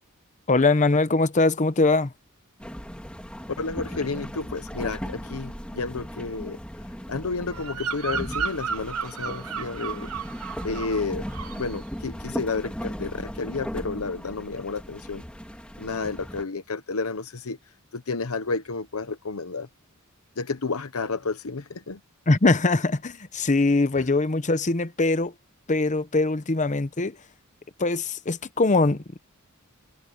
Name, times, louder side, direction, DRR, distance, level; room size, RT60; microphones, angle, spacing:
voice 1, 0.5-2.1 22.3-25.3 25.7-27.2 27.8-29.2, left 3 dB, 35° left, 0.9 m, -22 dB
sound 1, 2.6-16.4, equal, 5° left, 3.7 m, -37 dB
voice 2, 3.6-6.6 7.1-10.1 10.6-11.3 11.6-15.2 15.8-17.6 17.9-19.7 20.4-22.0, left 4 dB, 80° left, 1.0 m, -31 dB
Bird vocalization bird call bird song, 7.5-11.0 11.3-11.7, right 6 dB, 85° right, 1.2 m, -33 dB
head